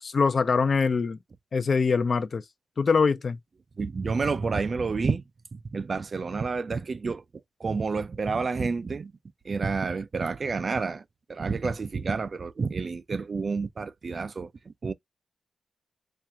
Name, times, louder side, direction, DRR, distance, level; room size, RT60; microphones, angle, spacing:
voice 1, 0.0-1.2 1.5-2.4 2.8-3.4, left 5 dB, 45° left, 0.5 m, -23 dB
voice 2, 3.8-5.2 5.5-7.2 7.6-9.1 9.4-11.0 11.3-14.9, right 4 dB, 40° right, 0.4 m, -29 dB
4.4 x 2.5 x 3.5 m
wide cardioid pair, 140°, 0 cm